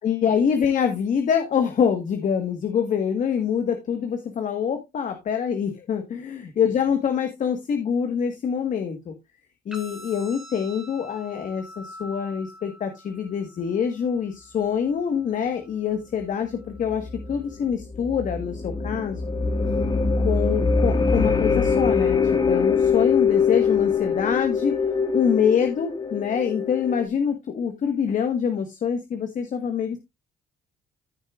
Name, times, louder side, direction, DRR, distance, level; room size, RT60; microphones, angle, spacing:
voice 1, 0.0-9.1 9.6-19.2 20.2-22.2 22.5-24.8 25.1-30.0, left 7 dB, 50° left, 6 dB, 1.5 m, -25 dB
sound 1, 9.7-17.7, equal, 5° right, 2.6 m, -46 dB
sound 2, 16.7-27.1, left 5 dB, 25° left, 1.4 m, -23 dB
14.5 x 6.5 x 2.5 m, 0.21 s
cardioid pair, 110°, 17 cm